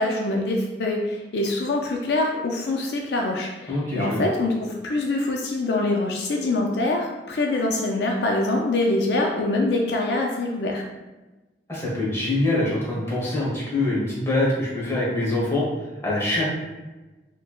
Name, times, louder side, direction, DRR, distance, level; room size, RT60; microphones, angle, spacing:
voice 1, 0.0-10.8, left 2 dB, 65° left, 0 dB, 0.4 m, -24 dB
voice 2, 3.7-4.2 11.7-15.6 16.0-16.5, left 2 dB, 15° left, -6 dB, 1.2 m, -24 dB
4.2 x 3.1 x 2.3 m, 1.1 s
head